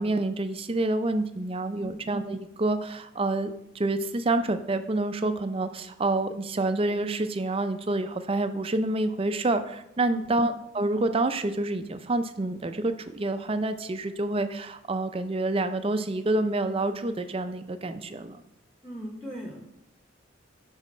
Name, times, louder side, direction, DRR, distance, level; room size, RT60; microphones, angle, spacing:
voice 1, 0.0-18.4, right 2 dB, 25° right, 10 dB, 0.4 m, -28 dB
voice 2, 10.1-10.6 18.8-19.6, equal, 5° right, 1 dB, 0.9 m, -39 dB
8.1 x 4.1 x 5.4 m, 0.84 s
head